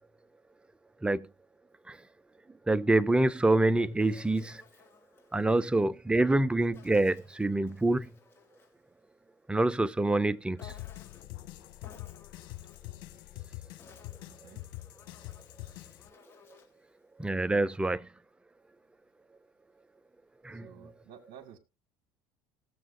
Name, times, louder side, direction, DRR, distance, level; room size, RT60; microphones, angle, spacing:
voice 1, 2.7-4.6 5.3-8.1 9.5-10.7 17.2-18.1 20.4-20.9, right 2 dB, 10° right, 0.6 m, -26 dB
Insect, 3.5-5.7 6.7-8.8 10.6-11.4 11.8-12.9 13.6-16.8, left 6 dB, 25° left, 3.4 m, -58 dB
sound 1, 10.6-16.1, left 18 dB, 65° left, 1.7 m, -45 dB
voice 2, 14.3-14.6 20.6-21.6, right 9 dB, 55° right, 1.8 m, -52 dB
19.0 x 7.3 x 2.6 m
hypercardioid pair, 80°, 10 cm